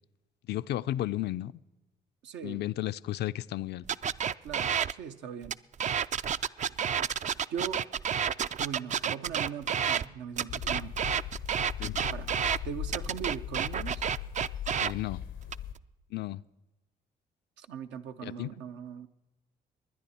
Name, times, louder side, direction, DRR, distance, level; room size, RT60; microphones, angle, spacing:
voice 1, 0.5-1.6 2.4-3.8 11.8-12.0 14.8-15.2 16.1-16.4 18.2-18.5, left 14 dB, 65° left, 14 dB, 0.4 m, -33 dB
voice 2, 2.2-2.6 4.4-5.6 7.5-7.9 8.6-11.0 11.8-12.3 12.6-14.0 17.6-19.1, right 7 dB, 80° right, 8 dB, 0.7 m, -40 dB
sound 1, 3.9-4.9 5.4-10.0 10.4-12.6 12.9-14.9 15.4-15.8, right 8 dB, 40° right, 0.4 m, -30 dB
sound 2, 10.5-15.7, left 9 dB, 85° left, 0.8 m, -39 dB
21.0 x 10.0 x 4.2 m, 1.1 s
supercardioid pair, 55°, 19 cm